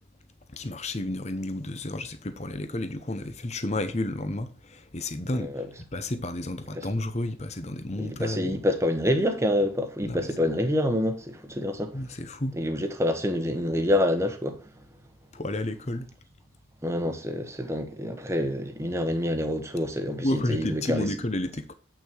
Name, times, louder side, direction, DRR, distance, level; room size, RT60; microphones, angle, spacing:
voice 1, 0.5-5.5 5.9-8.6 10.0-10.3 11.9-12.5 15.3-16.1 20.2-21.7, left 1 dB, 35° left, 0.9 m, -31 dB
voice 2, 5.3-5.7 6.7-6.9 8.0-11.9 12.5-14.6 16.8-21.1, left 1 dB, 15° right, 1.1 m, -27 dB
8.4 x 6.0 x 4.5 m
head